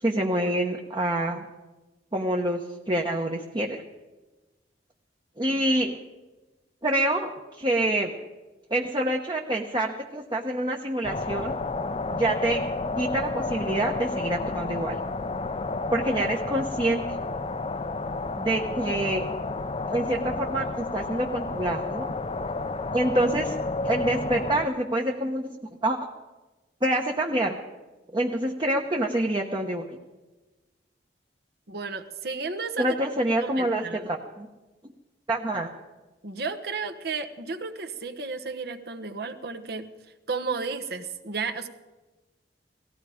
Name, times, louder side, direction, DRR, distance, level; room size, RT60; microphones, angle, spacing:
voice 1, 0.0-1.4 2.1-2.6 2.9-3.8 5.4-6.0 6.8-7.3 7.6-8.1 8.7-11.6 12.1-12.6 12.9-15.0 15.9-17.2 18.4-19.3 19.9-22.1 22.9-23.5 23.8-25.5 25.8-26.0 26.8-27.6 28.1-29.8 32.8-34.5 35.3-35.7, right 1 dB, 25° right, 1 dB, 1.0 m, -26 dB
sound 1, 11.0-24.7, left 3 dB, 35° left, 0.6 m, -31 dB
voice 2, 31.7-33.1 33.4-34.1 36.2-39.9 40.3-41.7, right 4 dB, 60° right, 7 dB, 1.2 m, -33 dB
18.0 x 15.0 x 5.1 m, 1.2 s
head